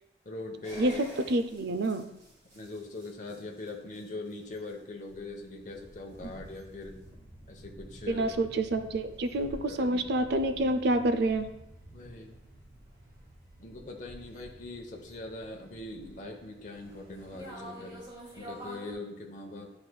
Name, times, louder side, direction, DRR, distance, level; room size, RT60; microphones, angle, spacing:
voice 1, 0.2-1.0 2.5-7.0 7.5-8.3 9.7-10.0 11.9-12.3 13.6-18.0 18.3-19.7, left 2 dB, 40° left, 1 dB, 0.9 m, -42 dB
sound 1, 0.6-18.9, right 1 dB, 25° right, 2.2 m, -50 dB
voice 2, 0.8-2.0 8.1-11.5, right 1 dB, 60° right, 9 dB, 0.5 m, -28 dB
10.0 x 4.8 x 2.3 m, 0.85 s
head